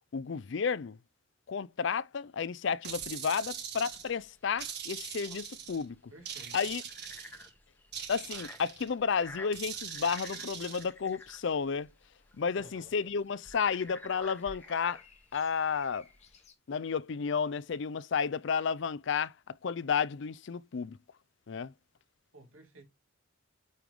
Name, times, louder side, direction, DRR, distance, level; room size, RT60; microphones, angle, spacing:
voice 1, 0.1-1.0 1.5-6.0 6.5-6.8 8.1-11.9 12.3-15.0 15.3-16.1 16.7-21.0 21.5-21.7, left 6 dB, 60° left, 0.4 m, -32 dB
sound 1, 2.8-4.1 4.6-5.8 6.3-7.5 7.9-8.9 9.5-10.9, right 8 dB, 50° right, 1.6 m, -41 dB
sound 2, 3.9-16.5, left 2 dB, 10° left, 0.9 m, -51 dB
voice 2, 6.1-6.6 12.5-12.9 22.3-22.8, right 2 dB, 85° right, 2.8 m, -53 dB
sound 3, 10.1-11.7 14.0-16.5, left 5 dB, 30° left, 1.1 m, -58 dB
9.3 x 3.5 x 3.8 m
head